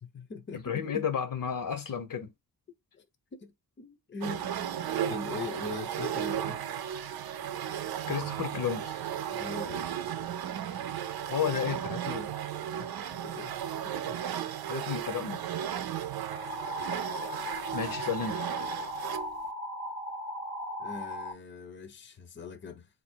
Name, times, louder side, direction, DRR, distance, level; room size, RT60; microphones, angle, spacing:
voice 1, 0.0-1.1 3.0-3.1 3.3-3.5 3.8-6.6 9.3-9.9 12.8-13.5 13.8-14.2 20.8-22.9, left 4 dB, 30° left, 0.7 m, -42 dB
voice 2, 0.5-2.3 8.1-9.0 11.3-12.3 14.7-15.4 17.7-18.4, left 7 dB, 60° left, 0.9 m, -32 dB
sound 1, 4.2-19.3, right 10 dB, 70° right, 0.6 m, -35 dB
sound 2, 16.3-21.3, equal, 30° right, 0.9 m, -37 dB
4.0 x 2.7 x 4.5 m
wide cardioid pair, 115°, 38 cm